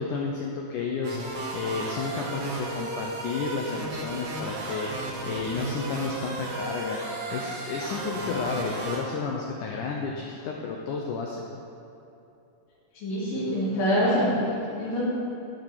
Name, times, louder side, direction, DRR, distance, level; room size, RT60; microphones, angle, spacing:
voice 1, 0.0-11.4, left 4 dB, 85° left, -1 dB, 1.8 m, -32 dB
sound 1, 1.0-9.0, right 2 dB, 90° right, 1.2 m, -34 dB
voice 2, 12.9-14.3 14.8-15.0, equal, 65° left, -12 dB, 3.7 m, -25 dB
12.0 x 5.2 x 5.6 m, 2.9 s
omnidirectional pair, 4.6 m